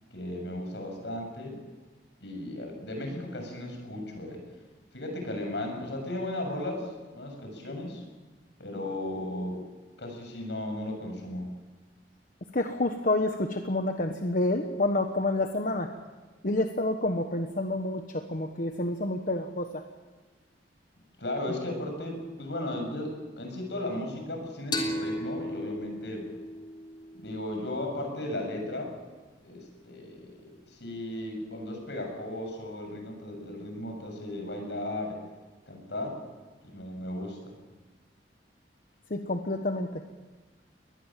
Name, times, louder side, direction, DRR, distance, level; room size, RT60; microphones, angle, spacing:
voice 1, 0.1-1.6 2.2-4.4 4.9-8.0 8.6-9.6 10.0-11.5 21.2-26.3 27.2-28.9 29.4-35.2 35.7-36.2 36.6-37.5, left 1 dB, 75° left, 3 dB, 7.0 m, -36 dB
voice 2, 12.5-15.9 16.4-19.8 39.1-40.0, left 2 dB, 50° left, 5 dB, 1.2 m, -28 dB
sound 1, 24.7-28.1, left 1 dB, 25° left, 3.4 m, -35 dB
23.0 x 20.0 x 7.5 m, 1.3 s
head